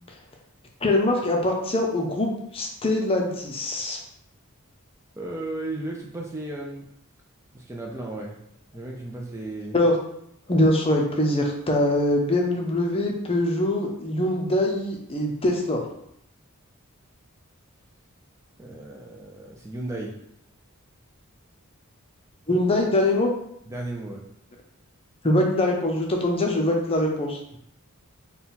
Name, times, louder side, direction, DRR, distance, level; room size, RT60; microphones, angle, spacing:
voice 1, 0.8-4.0 9.7-10.0 10.5-15.8 22.5-23.3 25.2-27.4, left 1 dB, 25° left, 1 dB, 0.6 m, -23 dB
voice 2, 5.2-6.9 7.5-8.4 8.7-9.8 18.6-20.2 23.7-24.3, right 2 dB, 15° right, -1 dB, 0.4 m, -34 dB
3.9 x 2.3 x 4.1 m, 0.73 s
head